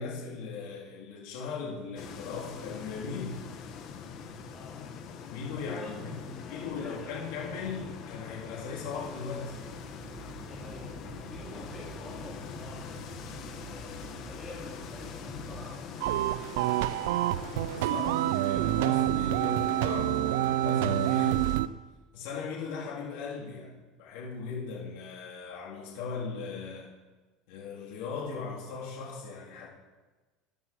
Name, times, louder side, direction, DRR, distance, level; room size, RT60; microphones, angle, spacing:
voice 1, 0.0-3.4 5.3-6.2 6.5-9.6 17.7-21.6 22.1-26.9 27.5-29.7, left 5 dB, 75° left, -4 dB, 3.4 m, -38 dB
sound 1, 2.0-21.6, left 6 dB, 50° left, 1.4 m, -43 dB
voice 2, 4.5-4.9 5.5-5.9 6.3-7.6 10.4-16.2, left 2 dB, 20° left, -7 dB, 3.1 m, -47 dB
sound 2, 9.4-15.6, right 3 dB, 70° right, 2.9 m, -47 dB
sound 3, 16.0-21.7, right 15 dB, 90° right, 0.4 m, -27 dB
12.5 x 11.5 x 4.6 m, 1.2 s
cardioid pair, 145°, 0 cm